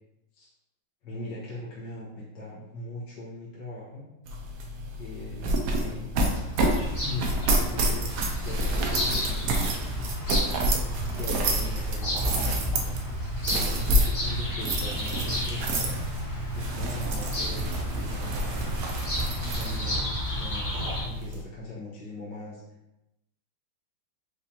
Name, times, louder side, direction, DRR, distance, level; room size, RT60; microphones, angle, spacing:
voice 1, 1.0-4.1 5.0-6.3 7.0-8.1 8.4-9.6 11.2-12.9 13.4-16.0 16.5-18.6 19.5-20.0 20.3-22.8, left 2 dB, 70° left, -8 dB, 1.8 m, -40 dB
sound 1, 4.3-21.4, right 1 dB, 70° right, 1.2 m, -29 dB
Bird vocalization bird call bird song, 6.3-21.0, equal, 30° left, 1.7 m, -31 dB
4.9 x 3.2 x 2.8 m, 0.92 s
omnidirectional pair, 2.0 m